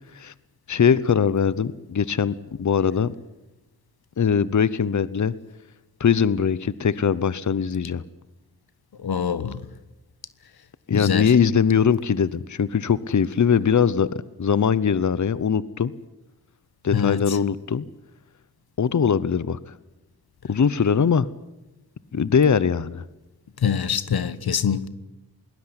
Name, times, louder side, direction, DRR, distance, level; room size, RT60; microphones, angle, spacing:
voice 1, 0.7-3.2 4.2-5.3 6.0-8.0 10.9-15.9 16.8-17.9 18.8-19.7 20.5-21.3 22.1-23.0, left 7 dB, 50° left, 0.9 m, -21 dB
voice 2, 9.0-9.6 10.9-11.3 16.9-17.4 23.6-24.9, left 7 dB, 85° left, 1.2 m, -24 dB
21.5 x 19.5 x 9.9 m
cardioid pair, 60°, 37 cm